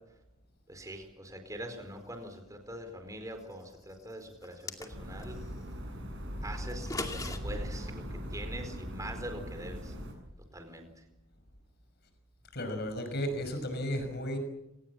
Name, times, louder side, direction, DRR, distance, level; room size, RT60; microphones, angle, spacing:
voice 1, 0.7-5.4 6.4-9.9 10.5-10.9, right 1 dB, 15° right, 6 dB, 4.4 m, -43 dB
sound 1, 4.4-5.3 6.7-7.4, left 2 dB, 15° left, 2.3 m, -38 dB
sound 2, 4.9-10.1, equal, 60° right, 8.0 m, -40 dB
voice 2, 12.5-14.4, equal, 55° left, 7 dB, 6.0 m, -34 dB
27.5 x 19.0 x 7.5 m, 0.87 s
head